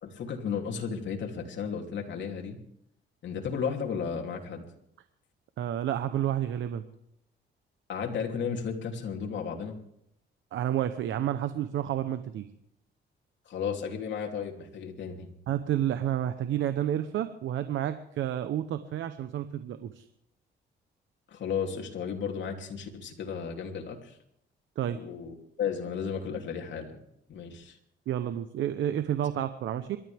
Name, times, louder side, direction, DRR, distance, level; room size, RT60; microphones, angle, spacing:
voice 1, 0.0-2.6 3.2-4.6 7.9-9.8 13.4-15.3 21.3-24.2 24.9-27.0 27.3-27.8, left 6 dB, 65° left, 1 dB, 3.1 m, -34 dB
voice 2, 5.6-6.8 10.5-12.5 15.5-20.0 24.8-25.0 28.1-30.0, right 11 dB, 75° right, 10 dB, 0.9 m, -30 dB
26.5 x 12.5 x 3.5 m, 0.76 s
cardioid pair, 90°, 20 cm